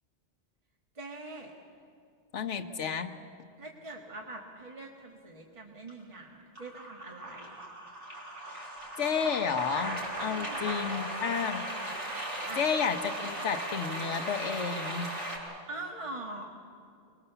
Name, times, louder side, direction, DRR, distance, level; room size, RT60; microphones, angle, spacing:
voice 1, 0.9-1.5 3.6-7.6 10.2-10.6 12.5-12.6 15.7-16.5, right 2 dB, 30° right, 0 dB, 1.7 m, -43 dB
voice 2, 2.3-3.1 8.5-8.7 9.0-11.6 12.2-12.3 12.6-15.1, left 6 dB, 85° left, 6 dB, 1.3 m, -31 dB
sound 1, 5.9-6.2 6.6-15.4, right 1 dB, 55° right, 4.7 m, -37 dB
26.5 x 20.5 x 6.9 m, 2.6 s
omnidirectional pair, 1.2 m